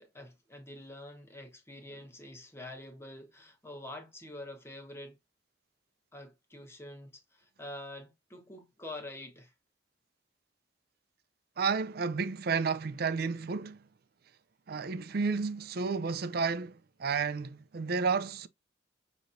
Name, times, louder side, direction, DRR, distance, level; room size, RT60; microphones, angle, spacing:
voice 1, 0.0-5.2 6.1-9.5, left 1 dB, 15° left, 1.1 m, -46 dB
voice 2, 11.6-13.8 14.7-18.5, right 5 dB, 55° right, 0.5 m, -31 dB
6.5 x 3.0 x 2.6 m
head